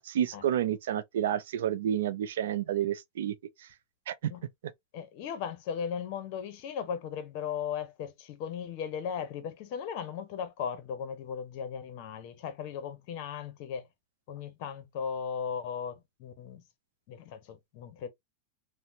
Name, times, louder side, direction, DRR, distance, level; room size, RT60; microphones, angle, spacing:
voice 1, 0.1-3.3 4.1-4.3, right 10 dB, 80° right, 0.4 m, -30 dB
voice 2, 4.9-13.9 14.3-16.6 17.1-18.1, left 7 dB, 55° left, 0.8 m, -37 dB
3.2 x 2.1 x 2.8 m
supercardioid pair, 130°, 0 cm